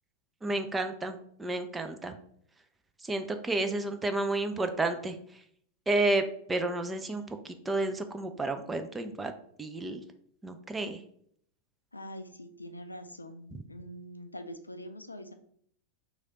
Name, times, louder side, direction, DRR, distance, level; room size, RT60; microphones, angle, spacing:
voice 1, 0.4-2.1 3.0-5.2 5.9-6.2 6.5-9.3 9.6-10.0 10.4-11.0, right 2 dB, 10° right, 7 dB, 0.4 m, -31 dB
voice 2, 11.9-15.3, equal, 80° left, 8 dB, 0.3 m, -44 dB
3.2 x 2.3 x 3.9 m, 0.64 s
figure-of-eight pair, 90°, 0 cm